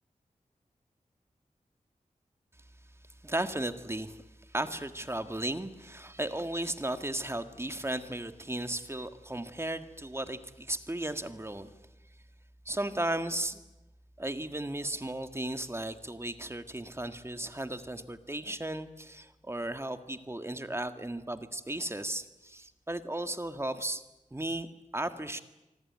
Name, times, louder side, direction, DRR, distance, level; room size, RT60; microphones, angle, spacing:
voice 1, 3.2-4.2 4.5-11.7 12.7-13.6 14.2-24.0 24.3-25.4, right 1 dB, 20° right, 8 dB, 1.8 m, -35 dB
25.0 x 24.0 x 9.6 m, 0.98 s
wide cardioid pair, 80°, 14 cm